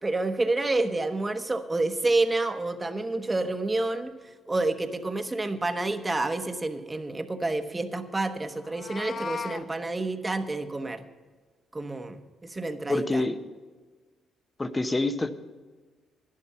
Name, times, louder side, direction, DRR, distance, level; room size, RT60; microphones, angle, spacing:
voice 1, 0.0-11.0 11.7-13.2, right 2 dB, 20° right, 7 dB, 1.1 m, -29 dB
Meow, 8.6-9.6, left 5 dB, 45° left, 0.7 m, -36 dB
voice 2, 12.9-13.4 14.6-15.3, left 2 dB, 20° left, 10 dB, 0.9 m, -26 dB
11.5 x 11.0 x 5.7 m, 1.4 s
cardioid pair, 90°, 0 cm